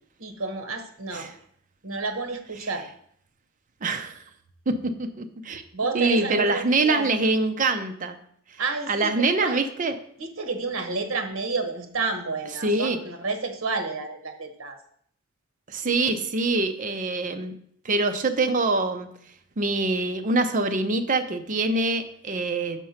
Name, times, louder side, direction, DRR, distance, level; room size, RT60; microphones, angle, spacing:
voice 1, 0.2-1.3 1.8-2.9 5.7-7.1 8.6-9.6 10.2-14.8, right 3 dB, 70° right, 6 dB, 1.1 m, -30 dB
voice 2, 3.8-4.2 4.7-5.6 5.9-8.2 8.9-9.9 12.6-13.0 15.7-17.5 17.8-19.1 19.6-22.8, right 3 dB, 40° right, 8 dB, 0.6 m, -24 dB
6.6 x 4.5 x 5.7 m, 0.64 s
head